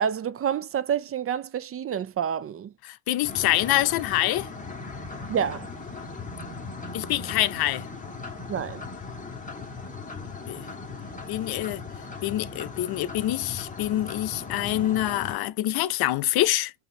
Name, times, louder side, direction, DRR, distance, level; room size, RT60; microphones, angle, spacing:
voice 1, 0.0-2.7 5.3-5.7 8.5-8.8, right 8 dB, 35° right, 0.5 m, -28 dB
voice 2, 2.9-4.5 6.9-7.8 10.5-10.7 11.3-11.8 12.2-16.7, left 15 dB, 65° left, 0.6 m, -26 dB
sound 1, 3.2-15.4, left 4 dB, 20° left, 1.6 m, -38 dB
5.3 x 2.7 x 3.2 m
supercardioid pair, 85°, 39 cm